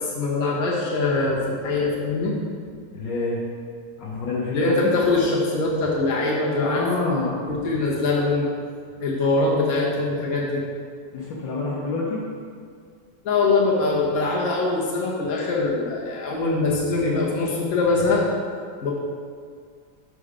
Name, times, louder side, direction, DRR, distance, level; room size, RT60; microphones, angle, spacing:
voice 1, 0.0-2.4 4.5-6.8 7.5-8.5 9.0-10.6 13.2-18.2 18.8-18.9, left 3 dB, 50° left, -5 dB, 1.6 m, -23 dB
voice 2, 2.9-3.4 4.0-4.9 6.5-7.4 11.1-12.2, left 3 dB, 70° left, -5 dB, 1.6 m, -27 dB
6.3 x 5.4 x 5.0 m, 2.1 s
omnidirectional pair, 2.1 m